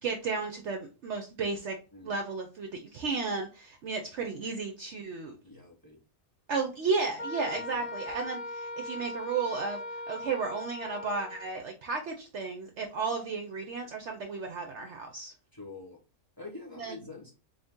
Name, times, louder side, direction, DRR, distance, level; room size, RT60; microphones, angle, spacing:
voice 1, 0.0-1.8 2.0-5.3 6.5-15.3 16.8-17.0, right 4 dB, 65° right, 3 dB, 0.8 m, -33 dB
voice 2, 5.4-6.0 7.6-7.8 15.5-16.0 16.4-17.3, left 3 dB, 15° left, 1 dB, 0.9 m, -46 dB
Wind instrument woodwind instrument, 7.2-11.6, left 2 dB, 45° left, 0.5 m, -39 dB
3.6 x 2.7 x 3.5 m, 0.33 s
omnidirectional pair, 1.6 m